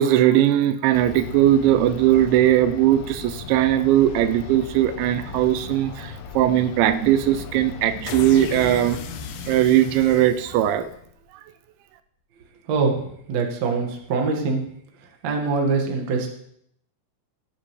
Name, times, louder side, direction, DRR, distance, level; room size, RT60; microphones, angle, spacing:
voice 1, 0.0-9.0 9.5-10.9, right 12 dB, 85° right, 12 dB, 2.9 m, -19 dB
sound 1, 0.9-11.2, left 5 dB, 75° left, 2.1 m, -36 dB
voice 2, 13.3-14.6 15.2-16.3, right 4 dB, 50° right, 2 dB, 2.2 m, -23 dB
17.5 x 10.0 x 3.3 m, 0.70 s
omnidirectional pair, 5.2 m